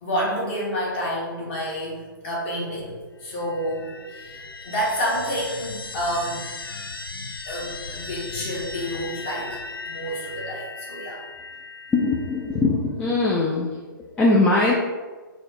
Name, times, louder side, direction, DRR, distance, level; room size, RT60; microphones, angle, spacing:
voice 1, 0.0-6.5 7.5-11.2, equal, 35° left, -5 dB, 1.5 m, -29 dB
sound 1, 3.3-12.5, left 3 dB, 85° left, 0.4 m, -37 dB
voice 2, 11.9-13.8 14.2-14.7, left 2 dB, 10° left, -4 dB, 0.3 m, -21 dB
3.9 x 2.4 x 4.6 m, 1.3 s
figure-of-eight pair, 125°, 11 cm